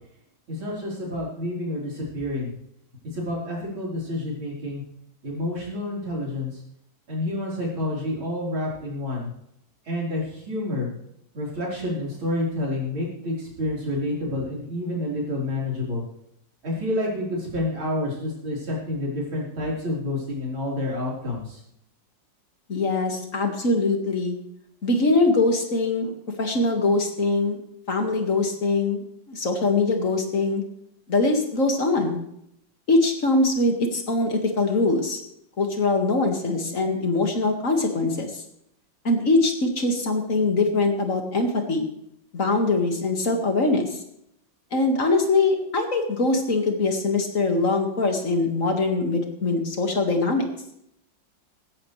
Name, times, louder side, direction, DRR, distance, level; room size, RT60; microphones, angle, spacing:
voice 1, 0.5-2.5 3.1-4.8 5.2-6.6 7.1-9.3 9.9-10.9 11.3-16.0 16.6-21.6, left 1 dB, 90° right, -4 dB, 5.3 m, -29 dB
voice 2, 22.7-24.4 24.8-26.1 26.4-27.6 27.9-30.6 31.1-32.2 32.9-35.2 35.6-38.4 39.0-41.9 42.3-44.0 44.7-50.4, left 3 dB, 40° left, 3 dB, 2.3 m, -22 dB
17.0 x 15.0 x 3.4 m, 0.75 s
omnidirectional pair, 2.2 m